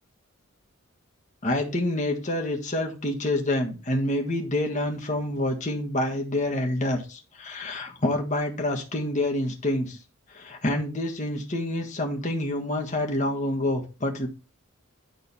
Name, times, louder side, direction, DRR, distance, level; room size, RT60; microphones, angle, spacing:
voice 1, 1.4-10.0 10.3-14.3, left 1 dB, 35° left, 2 dB, 1.5 m, -27 dB
10.5 x 3.8 x 4.1 m, 0.33 s
head